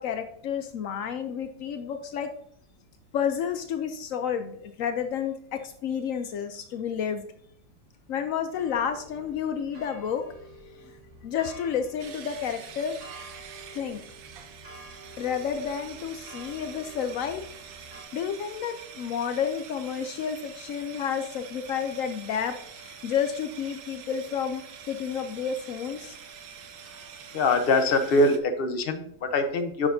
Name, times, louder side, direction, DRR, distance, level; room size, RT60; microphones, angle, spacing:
voice 1, 0.0-2.3 3.1-7.2 8.1-10.2 10.8-10.9 11.2-13.0 13.7-14.0 15.2-17.4 18.1-24.6 24.9-26.2, left 7 dB, 90° left, 7 dB, 0.7 m, -30 dB
sound 1, 8.5-18.0, right 1 dB, 20° right, 1.6 m, -49 dB
sound 2, 12.0-28.4, right 7 dB, 85° right, 1.6 m, -46 dB
voice 2, 27.3-29.9, left 2 dB, 50° left, 7 dB, 0.7 m, -23 dB
9.8 x 6.0 x 2.7 m, 0.65 s
omnidirectional pair, 2.0 m